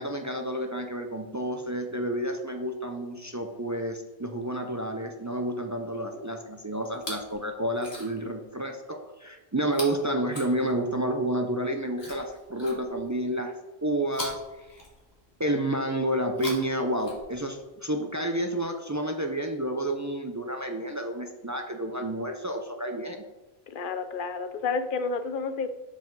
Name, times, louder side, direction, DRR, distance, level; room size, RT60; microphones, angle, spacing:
voice 1, 0.0-13.5 13.8-14.8 15.4-23.2, right 1 dB, 30° right, 4 dB, 0.3 m, -30 dB
Chewing mastication, 6.8-7.3 7.7-8.3 9.7-11.1 11.9-13.2 14.1-15.3 16.2-17.6 18.5-18.6, left 2 dB, 80° left, 2.1 m, -42 dB
voice 2, 23.7-25.7, left 4 dB, 60° left, 10 dB, 0.7 m, -31 dB
7.4 x 4.9 x 3.9 m, 1.1 s
omnidirectional pair, 1.0 m